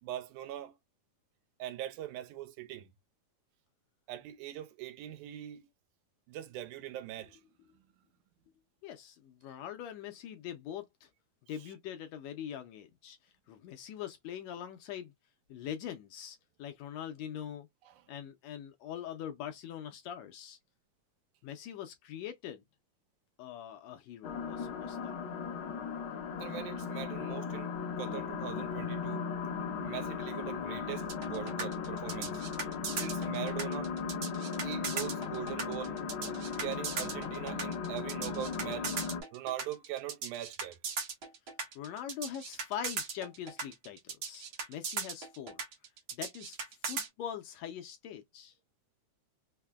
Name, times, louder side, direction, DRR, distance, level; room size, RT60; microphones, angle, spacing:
voice 1, 0.0-0.8 1.6-2.9 4.1-5.7 6.3-7.4 17.8-18.0 26.4-29.3 29.8-32.4 32.9-33.9 34.6-36.0 36.6-38.9 39.3-40.8, right 12 dB, 85° right, 2.0 m, -41 dB
voice 2, 8.8-11.1 11.5-15.1 15.5-17.7 18.1-20.6 21.4-22.6 23.4-25.3 41.7-45.6 46.1-48.5, left 9 dB, 80° left, 1.6 m, -43 dB
sound 1, 24.2-39.2, left 6 dB, 60° left, 1.5 m, -37 dB
sound 2, 31.1-47.1, right 5 dB, 60° right, 1.4 m, -38 dB
5.6 x 2.1 x 2.2 m
omnidirectional pair, 3.5 m